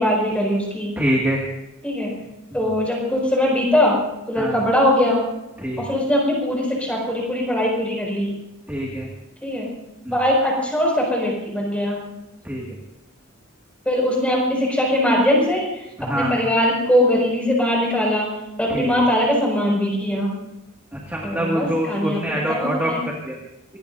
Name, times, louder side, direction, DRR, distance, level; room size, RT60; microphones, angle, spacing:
voice 1, 0.0-0.9 1.8-2.1 2.5-4.0 4.3-5.2 5.8-8.4 9.4-9.7 10.1-12.0 13.8-15.8 16.1-18.3 18.6-20.3 21.2-22.2 22.5-23.0, left 1 dB, 5° left, -2 dB, 6.1 m, -21 dB
voice 2, 1.0-1.4 2.5-2.7 4.4-4.6 5.6-5.8 8.7-9.1 10.1-10.2 12.4-12.7 16.0-16.4 18.7-18.9 20.9-22.9 23.2-23.4, equal, 10° right, -3 dB, 2.0 m, -25 dB
25.0 x 19.5 x 2.7 m, 0.89 s
head